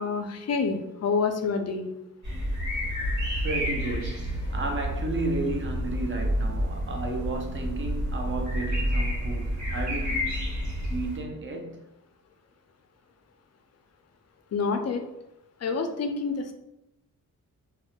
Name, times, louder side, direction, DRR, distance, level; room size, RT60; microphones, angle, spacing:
voice 1, 0.0-1.9 14.5-15.0 15.6-16.5, left 5 dB, 45° left, 0.4 m, -27 dB
sound 1, 2.2-11.2, equal, 55° right, 1.1 m, -29 dB
voice 2, 3.0-10.3 10.9-11.8, right 2 dB, 35° right, 0.5 m, -33 dB
2.2 x 2.0 x 2.9 m
cardioid pair, 65°, 36 cm